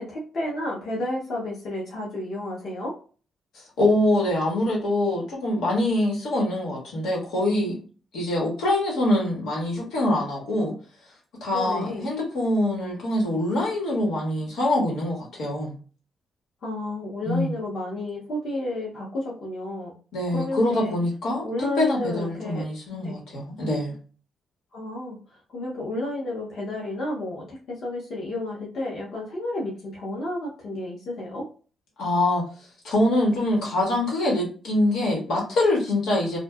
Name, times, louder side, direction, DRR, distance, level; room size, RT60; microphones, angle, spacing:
voice 1, 0.0-2.9 11.5-12.1 16.6-19.9 20.3-20.9 21.4-22.6 23.0-23.2 24.7-25.2 25.5-31.4, left 1 dB, 50° left, -5 dB, 0.7 m, -31 dB
voice 2, 3.8-7.8 8.1-10.7 11.4-15.8 17.2-17.5 20.1-21.4 21.8-24.0 32.0-32.4 32.8-36.4, left 1 dB, 85° left, -2 dB, 1.2 m, -24 dB
2.6 x 2.2 x 2.3 m, 0.37 s
wide cardioid pair, 180°, 0 cm